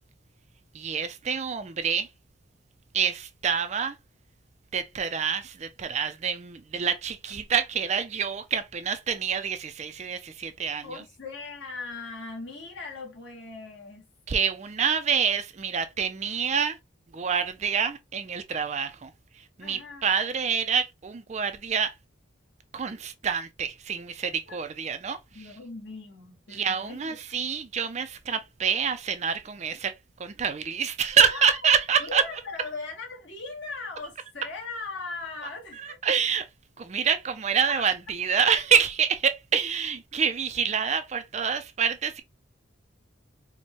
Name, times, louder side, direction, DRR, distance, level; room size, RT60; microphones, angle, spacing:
voice 1, 0.7-2.1 2.9-4.0 4.7-11.0 14.3-16.8 17.1-21.9 22.7-25.2 26.5-29.9 30.2-32.3 35.7-36.5 36.8-42.2, right 7 dB, 35° right, 0.3 m, -27 dB
voice 2, 10.8-14.0 19.6-20.1 24.5-24.6 25.3-27.4 31.2-31.5 32.0-36.0 37.7-37.8, left 3 dB, 60° left, 1.3 m, -39 dB
4.3 x 2.1 x 2.9 m
head